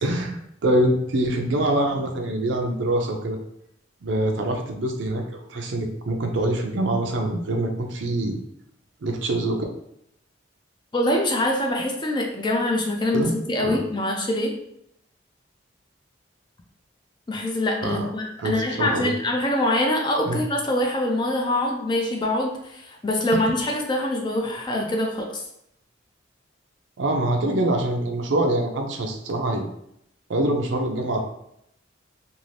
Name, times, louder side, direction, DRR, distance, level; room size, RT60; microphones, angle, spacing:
voice 1, 0.0-3.4 4.0-8.4 9.0-9.7 13.1-13.3 13.6-13.8 17.8-18.1 18.4-19.1 20.2-20.4 27.0-29.7 30.3-31.2, right 1 dB, 70° right, 3 dB, 0.5 m, -24 dB
voice 2, 10.9-14.5 17.3-25.4, left 1 dB, 25° left, 1 dB, 0.4 m, -24 dB
2.6 x 2.4 x 3.2 m, 0.76 s
head